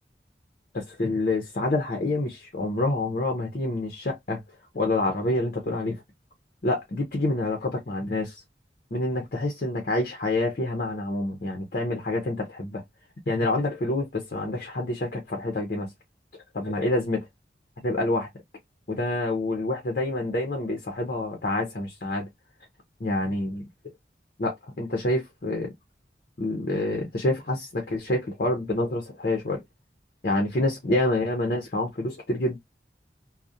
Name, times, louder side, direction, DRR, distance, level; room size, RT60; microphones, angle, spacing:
voice 1, 0.7-4.4 4.7-6.0 6.6-8.4 8.9-12.8 13.3-15.9 16.5-17.3 17.8-18.3 18.9-22.3 23.0-23.6 24.4-25.7 26.4-29.6 30.2-32.6, left 2 dB, 50° left, 0.6 m, -27 dB
2.3 x 2.0 x 2.5 m
head